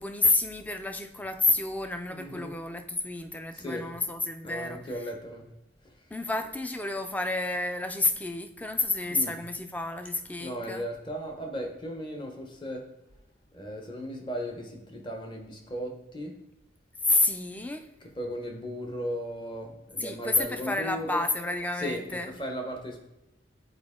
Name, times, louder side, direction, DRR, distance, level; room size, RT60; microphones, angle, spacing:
voice 1, 0.0-5.1 6.1-10.8 17.0-17.9 20.0-22.3, left 2 dB, 10° left, 7 dB, 0.3 m, -29 dB
voice 2, 2.1-2.5 3.5-3.8 4.4-5.4 5.8-5.9 9.1-9.3 10.4-12.8 13.5-16.3 18.2-21.2 21.8-23.0, equal, 25° left, 2 dB, 0.9 m, -36 dB
7.9 x 4.3 x 3.6 m, 0.92 s
head